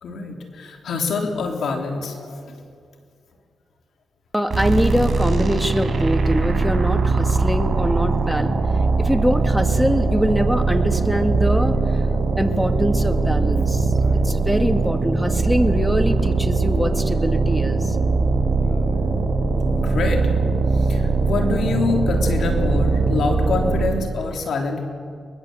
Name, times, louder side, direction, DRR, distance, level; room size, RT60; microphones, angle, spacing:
voice 1, 0.0-2.6 10.1-10.2 14.0-14.3 18.6-19.2 19.8-20.2 20.7-24.9, left 4 dB, 75° left, 2 dB, 3.6 m, -26 dB
voice 2, 4.3-8.5 9.0-12.0 12.4-13.9 14.2-18.0, equal, ahead, 6 dB, 2.2 m, -23 dB
sound 1, 4.5-24.1, right 3 dB, 45° right, 4.0 m, -20 dB
23.0 x 21.0 x 8.0 m, 2.3 s
cardioid pair, 60°, 0 cm